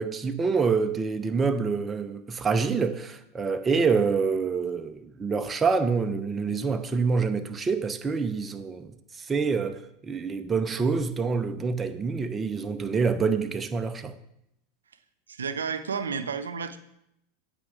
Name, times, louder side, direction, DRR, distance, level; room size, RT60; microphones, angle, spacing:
voice 1, 0.0-14.1, right 5 dB, 20° right, 0.7 m, -26 dB
voice 2, 15.3-16.8, right 6 dB, 90° right, 0.6 m, -31 dB
8.6 x 5.3 x 4.9 m
hypercardioid pair, 95°, 0 cm